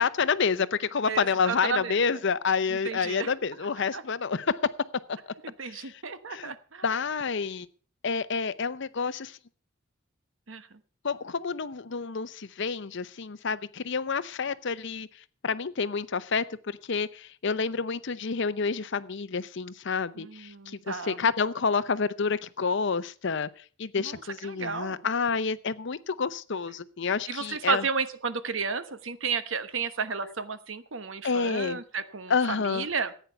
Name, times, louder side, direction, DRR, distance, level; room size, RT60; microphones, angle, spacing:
voice 1, 0.0-4.6 5.6-6.0 6.3-6.5 6.8-7.7 8.0-9.4 11.0-15.1 15.4-23.5 23.8-27.8 31.2-31.8 32.3-32.9, left 5 dB, 60° left, 16 dB, 0.7 m, -29 dB
voice 2, 1.1-2.0 2.7-3.3 3.9-4.0 5.4-6.8 10.5-10.7 20.2-21.2 23.9-25.1 27.3-33.1, right 5 dB, 70° right, 12 dB, 1.1 m, -33 dB
14.5 x 9.2 x 5.7 m, 0.42 s
head